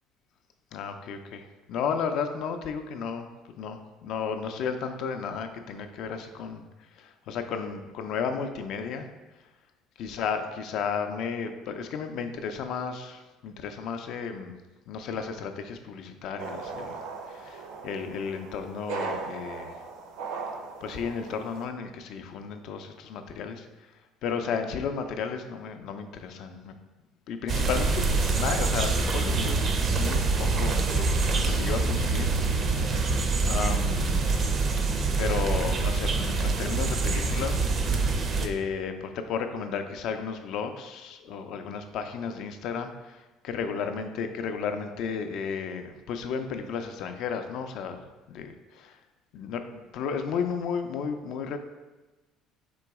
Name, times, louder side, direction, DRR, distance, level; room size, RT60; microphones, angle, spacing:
voice 1, 0.7-3.3 3.6-6.6 7.0-9.1 10.0-14.5 14.9-17.0 17.3-19.8 20.8-23.7 24.2-26.7 27.3-29.7 30.0-32.9 33.4-34.4 35.2-37.7 38.4-49.0 49.3-51.6, left 6 dB, 60° left, 7 dB, 0.4 m, -33 dB
sound 1, 16.4-21.6, right 4 dB, 90° right, 0.7 m, -38 dB
sound 2, 27.5-38.5, right 3 dB, 35° right, 0.4 m, -25 dB
3.8 x 3.0 x 4.6 m, 1.1 s
cardioid pair, 145°, 0 cm